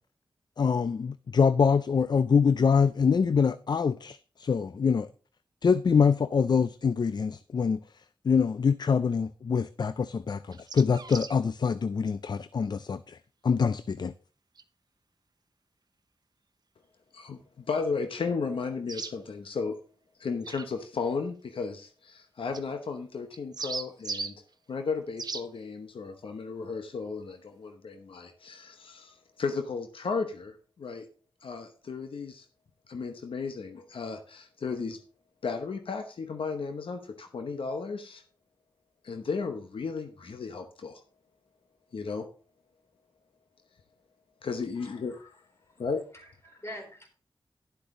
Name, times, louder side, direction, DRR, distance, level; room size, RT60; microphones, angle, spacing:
voice 1, 0.6-5.1 5.6-7.8 8.2-13.2 13.4-14.1, left 6 dB, 55° left, 0.4 m, -25 dB
sound 1, 10.5-11.4 14.6-14.7 18.9-19.1 20.4-20.7 22.5-22.6 23.3-24.3 25.2-25.4, right 4 dB, 50° right, 0.8 m, -37 dB
voice 2, 17.1-19.8 20.2-24.3 24.7-31.1 31.4-32.4 32.9-35.0 35.4-38.2 39.0-41.0 41.9-42.3 44.4-45.2 45.8-46.0, left 4 dB, 80° left, 0.9 m, -34 dB
voice 3, 44.8-45.3 45.6-45.8 46.1-47.1, left 1 dB, 30° left, 3.9 m, -46 dB
11.5 x 8.0 x 3.7 m
wide cardioid pair, 75°, 9 cm